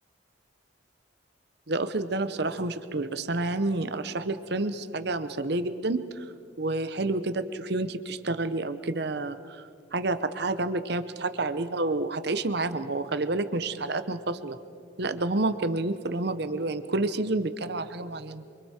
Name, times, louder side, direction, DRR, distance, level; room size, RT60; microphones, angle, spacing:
voice 1, 1.7-6.3 6.6-9.6 9.9-14.6 15.0-18.4, right 2 dB, 60° right, 11 dB, 1.0 m, -29 dB
28.0 x 25.0 x 4.4 m, 2.3 s
head